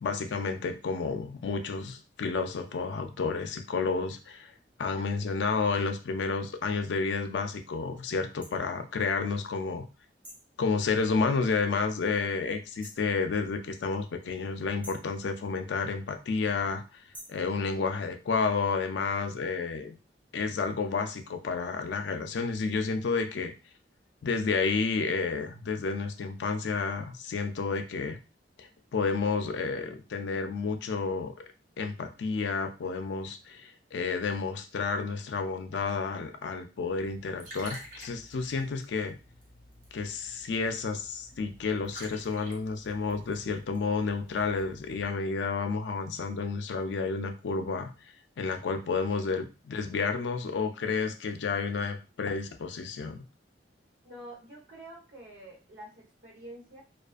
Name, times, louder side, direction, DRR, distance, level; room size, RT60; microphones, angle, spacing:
voice 1, 0.0-4.5 4.8-9.9 10.6-16.8 17.3-20.0 20.3-23.5 24.2-28.2 28.6-31.3 31.8-39.2 39.9-47.9 48.4-53.2, left 4 dB, 80° left, 6 dB, 0.4 m, -31 dB
sound 1, 8.4-8.6 10.2-10.5 12.8-13.1 14.8-15.1 17.1-17.4, equal, 10° right, 0.5 m, -48 dB
Liquid, 36.9-45.0, right 1 dB, 50° right, 0.8 m, -50 dB
voice 2, 54.0-56.8, right 1 dB, 70° right, -2 dB, 1.3 m, -48 dB
2.4 x 2.4 x 2.4 m, 0.31 s
head